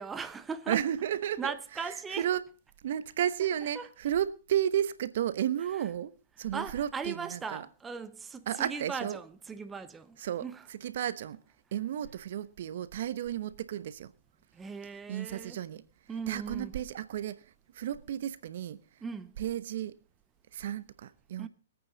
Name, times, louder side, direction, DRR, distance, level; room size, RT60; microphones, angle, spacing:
voice 1, 0.0-0.8 1.4-2.3 3.7-3.9 6.5-10.7 14.5-15.6 16.1-16.8 19.0-19.3 21.4-21.5, right 5 dB, 10° right, 0.8 m, -39 dB
voice 2, 0.7-1.5 2.1-2.4 2.8-7.7 8.5-9.2 10.2-11.4 11.7-14.1 15.1-15.8 16.3-19.0 19.4-20.0 20.5-21.5, right 10 dB, 60° right, 0.9 m, -33 dB
24.0 x 8.8 x 4.1 m
hypercardioid pair, 130°, 0 cm